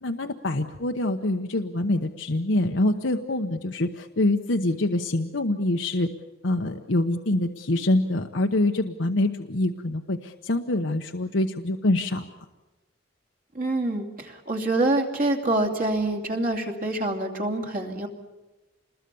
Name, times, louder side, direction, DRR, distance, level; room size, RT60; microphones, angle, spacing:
voice 1, 0.0-6.1 6.4-12.3, left 1 dB, 70° left, 4 dB, 1.0 m, -25 dB
voice 2, 13.5-18.1, right 2 dB, 45° right, 3 dB, 2.8 m, -26 dB
27.5 x 21.0 x 7.0 m, 1.2 s
head